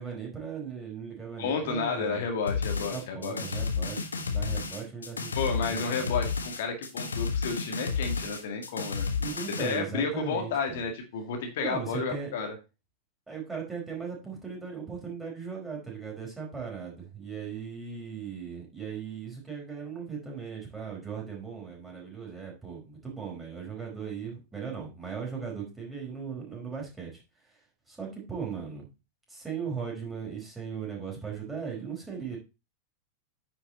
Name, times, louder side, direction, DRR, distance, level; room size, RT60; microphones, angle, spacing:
voice 1, 0.0-2.2 2.9-6.3 9.2-10.8 11.6-12.3 13.3-27.1 27.9-28.9 29.3-32.4, right 6 dB, 10° right, -2 dB, 4.6 m, -38 dB
voice 2, 1.4-3.6 5.4-9.1 9.6-12.5, left 5 dB, 55° left, 4 dB, 2.2 m, -31 dB
sound 1, 2.5-9.8, left 5 dB, 75° left, 1.1 m, -32 dB
9.4 x 6.0 x 4.2 m, 0.28 s
figure-of-eight pair, 90°, 0 cm